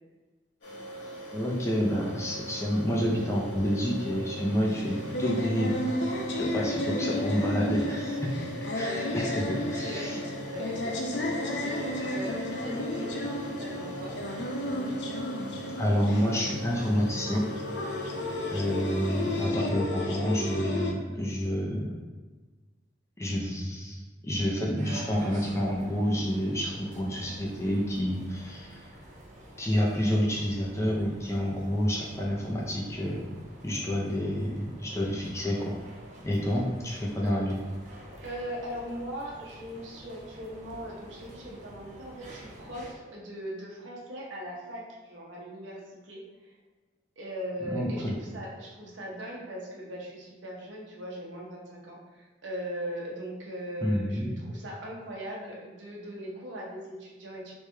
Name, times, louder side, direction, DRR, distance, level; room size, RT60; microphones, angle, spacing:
sound 1, 0.6-19.5, right 1 dB, 80° left, 1.3 m, -42 dB
voice 1, 1.3-8.5 8.7-10.2 15.8-17.4 17.9-18.0 18.5-21.9 23.2-28.9 29.6-33.2 33.6-35.7 36.2-37.6 47.7-48.1 53.8-54.3, equal, 15° left, -3 dB, 0.5 m, -29 dB
sound 2, 4.7-20.9, left 1 dB, 65° left, 0.5 m, -32 dB
voice 2, 8.8-14.1 37.2-37.4 38.2-46.5 47.2-57.5, equal, 80° right, -3 dB, 0.9 m, -40 dB
sound 3, 24.8-42.9, right 1 dB, 40° right, 0.6 m, -49 dB
3.2 x 3.0 x 3.3 m, 1.3 s
head